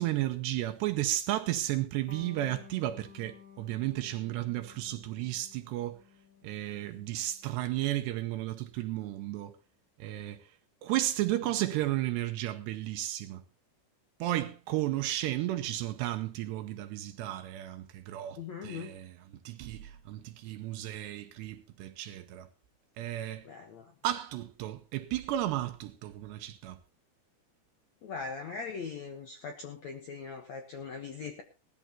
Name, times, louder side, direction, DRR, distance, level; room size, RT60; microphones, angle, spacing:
voice 1, 0.0-6.0 6.4-9.6 10.0-10.5 10.8-13.4 14.2-19.2 19.5-22.5 23.0-23.5 24.0-26.8, right 14 dB, 80° right, 2.9 m, -33 dB
Electric guitar, 2.1-9.2, left 6 dB, 60° left, 1.0 m, -55 dB
voice 2, 18.4-18.9 23.4-23.9 28.0-31.4, left 5 dB, 75° left, 1.6 m, -40 dB
19.0 x 13.5 x 2.9 m
omnidirectional pair, 5.0 m